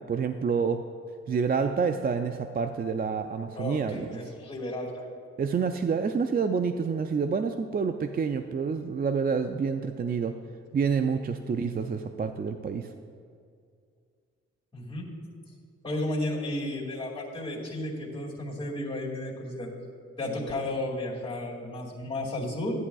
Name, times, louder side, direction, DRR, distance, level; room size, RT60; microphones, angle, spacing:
voice 1, 0.1-0.8 1.3-4.2 5.4-10.4 10.7-12.9, right 5 dB, 30° right, 8 dB, 0.4 m, -28 dB
voice 2, 3.6-5.0 14.7-15.1 15.8-19.7 20.2-22.9, left 1 dB, 15° left, -4 dB, 2.2 m, -33 dB
11.0 x 9.3 x 2.3 m, 2.2 s
supercardioid pair, 45°, 30 cm